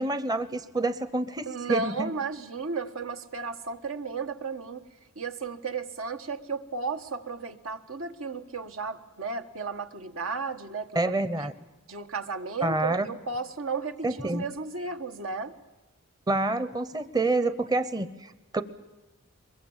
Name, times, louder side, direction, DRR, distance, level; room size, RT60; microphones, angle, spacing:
voice 1, 0.0-2.1 10.9-11.5 12.6-13.1 14.0-14.4 16.3-18.6, right 2 dB, 20° right, 13 dB, 0.7 m, -28 dB
voice 2, 1.5-4.8 5.1-11.1 11.9-15.5, right 4 dB, 80° right, 7 dB, 1.4 m, -34 dB
23.0 x 22.0 x 7.2 m, 1.1 s
head